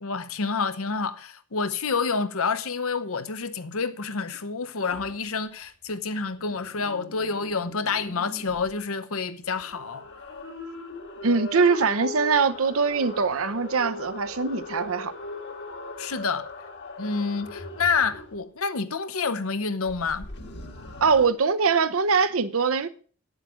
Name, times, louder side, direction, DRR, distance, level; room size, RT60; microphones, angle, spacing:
voice 1, 0.0-10.0 16.0-16.5 17.0-20.3, left 5 dB, 75° left, 0.9 m, -28 dB
sound 1, 4.8-5.2 6.3-8.7 9.4-18.4 19.8-21.3, left 1 dB, 50° left, 1.4 m, -39 dB
voice 2, 11.2-15.1 21.0-22.9, right 5 dB, 75° right, 0.7 m, -22 dB
9.6 x 7.5 x 6.2 m
head